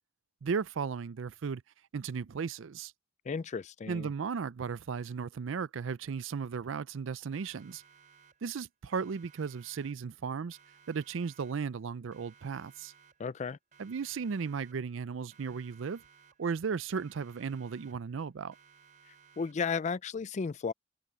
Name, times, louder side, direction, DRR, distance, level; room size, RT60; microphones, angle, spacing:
voice 1, 0.4-1.6 1.9-2.9 3.9-7.8 8.4-10.6 10.9-12.9 13.8-16.0 16.4-18.6, right 5 dB, 80° right, 0.5 m, -35 dB
voice 2, 3.3-4.1 13.2-13.6 19.4-20.7, left 5 dB, 35° left, 0.4 m, -34 dB
Siren, 7.3-8.6 8.9-10.2 10.5-11.8 12.1-13.4 13.7-15.0 15.3-16.6 16.9-18.2 18.5-19.8, right 6 dB, 45° right, 4.5 m, -61 dB
head